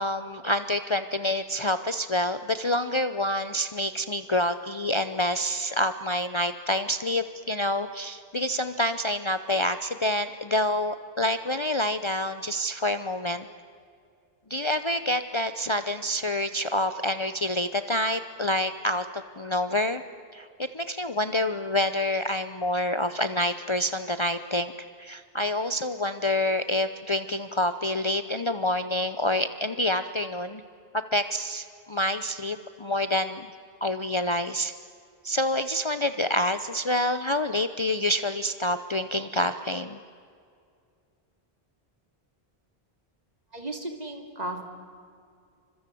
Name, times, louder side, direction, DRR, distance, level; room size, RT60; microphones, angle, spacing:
voice 1, 0.0-13.5 14.5-20.0 20.3-24.7 25.0-30.6 30.9-33.5 33.8-34.7 35.2-40.0, left 1 dB, 30° left, 10 dB, 0.8 m, -27 dB
voice 2, 43.5-44.6, right 1 dB, 40° right, 4 dB, 3.3 m, -35 dB
29.0 x 25.5 x 7.7 m, 2.3 s
omnidirectional pair, 1.0 m